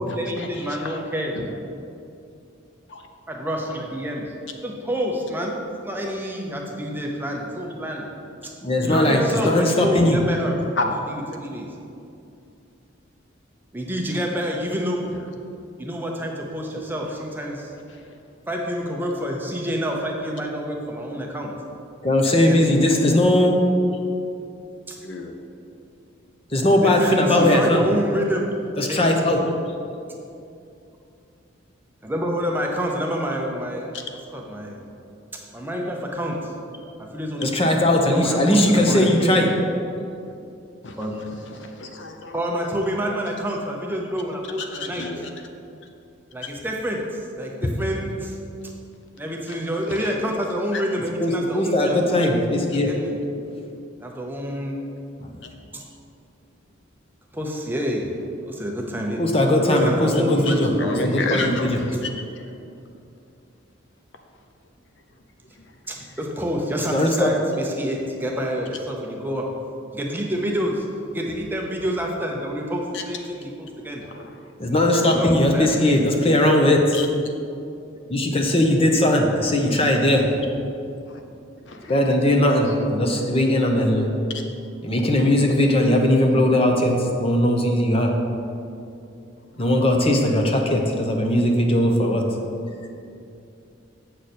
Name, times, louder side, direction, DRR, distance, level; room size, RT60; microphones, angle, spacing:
voice 1, 0.0-1.4 3.3-4.3 4.6-8.1 8.4-8.5 8.8-10.6 10.8-11.7 13.7-15.1 15.8-17.7 18.5-21.5 22.4-22.7 24.9-25.0 26.8-29.0 32.0-33.9 34.3-34.8 35.5-36.5 37.0-37.5 38.1-39.1 41.0-41.2 42.3-45.1 46.3-48.4 49.2-52.0 52.8-53.2 54.0-54.8 55.7-55.8 57.3-58.1 58.5-59.2 59.6-61.3 65.9-69.5 69.9-70.9 71.1-74.0 74.7-76.0, equal, 10° right, 0 dB, 0.7 m, -28 dB
voice 2, 8.6-10.2 22.0-23.6 26.5-27.8 28.8-29.4 37.4-39.6 51.2-53.0 55.2-55.3 59.2-60.7 61.1-61.8 66.9-67.3 74.6-77.0 78.1-80.3 81.9-84.1 84.8-88.1 89.6-92.3, left 1 dB, 30° left, 2 dB, 0.8 m, -19 dB
voice 3, 41.6-42.3 44.6-45.3 50.7-50.8 55.4-55.8 60.5-62.5 72.9-73.0 74.1-74.3 76.9-77.1 81.1-81.2 81.7-81.9 84.3-84.4, left 3 dB, 65° left, 4 dB, 0.7 m, -30 dB
7.9 x 6.4 x 4.3 m, 2.6 s
head